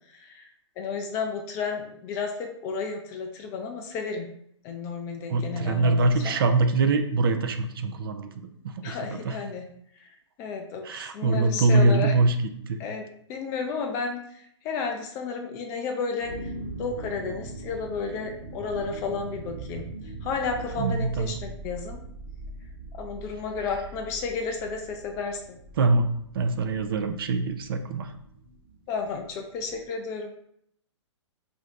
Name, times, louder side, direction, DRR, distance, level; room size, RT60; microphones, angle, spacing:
voice 1, 0.1-0.5 0.8-4.3 4.6-6.4 8.8-9.7 10.0-10.1 10.4-12.1 12.8-16.5 16.8-19.9 20.2-22.0 23.0-25.6 28.9-30.4, left 5 dB, 20° left, 3 dB, 0.3 m, -32 dB
voice 2, 5.3-9.3 10.8-12.3 12.7-12.8 20.8-21.4 25.8-26.1 26.3-28.1, right 3 dB, 50° right, 7 dB, 0.4 m, -24 dB
sound 1, 16.2-29.9, right 2 dB, 30° right, 0.9 m, -41 dB
4.9 x 2.5 x 2.2 m, 0.70 s
figure-of-eight pair, 120°, 15 cm